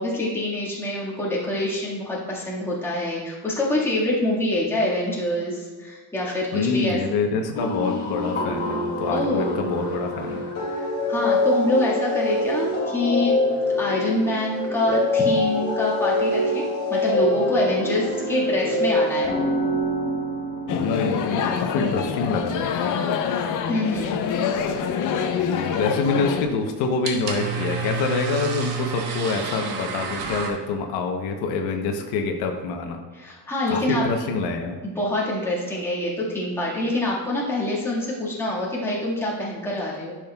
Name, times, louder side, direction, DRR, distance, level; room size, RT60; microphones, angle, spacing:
voice 1, 0.0-7.0 9.1-9.5 10.7-13.4 13.8-19.3 23.7-24.1 33.1-34.0 34.8-40.2, left 1 dB, 5° left, -6 dB, 1.6 m, -25 dB
voice 2, 6.5-10.4 20.7-22.7 25.4-33.0 33.7-34.8, left 4 dB, 80° left, 4 dB, 0.9 m, -26 dB
sound 1, 7.5-22.5, left 1 dB, 35° left, 2.1 m, -25 dB
sound 2, 20.7-26.4, left 7 dB, 55° left, 0.7 m, -25 dB
sound 3, 25.3-30.5, right 4 dB, 85° right, 1.2 m, -31 dB
10.5 x 6.2 x 2.3 m, 1.4 s
cardioid pair, 160°, 38 cm